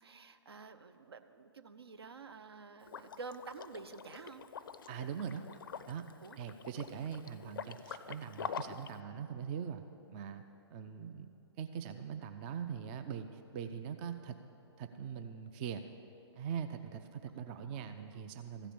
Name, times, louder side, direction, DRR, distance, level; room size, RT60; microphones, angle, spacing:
voice 1, 0.0-4.5 6.2-6.4 8.4-8.6 17.6-18.2, right 4 dB, 65° right, 9 dB, 0.6 m, -50 dB
Liquid, 2.8-8.9, left 7 dB, 50° left, 0.4 m, -46 dB
voice 2, 4.9-5.4 5.9-6.0 6.4-9.8 10.1-10.4 10.7-14.4 14.8-15.8 16.3-18.7, right 7 dB, 20° right, 8 dB, 0.4 m, -42 dB
14.0 x 5.0 x 8.5 m, 2.8 s
figure-of-eight pair, 125°, 14 cm